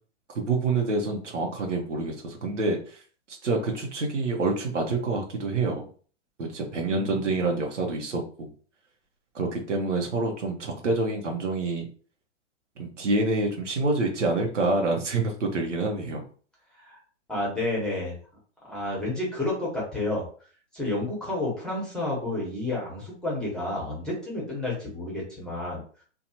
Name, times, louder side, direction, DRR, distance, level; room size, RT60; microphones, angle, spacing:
voice 1, 0.3-3.0 3.3-5.9 6.4-8.5 9.3-11.8 12.8-16.2, right 3 dB, 75° right, 1 dB, 0.9 m, -27 dB
voice 2, 6.8-7.3 16.8-17.0 17.3-18.2 18.6-20.3 20.7-25.8, left 2 dB, ahead, -4 dB, 1.1 m, -30 dB
2.6 x 2.4 x 2.9 m, 0.43 s
figure-of-eight pair, 115°, 36 cm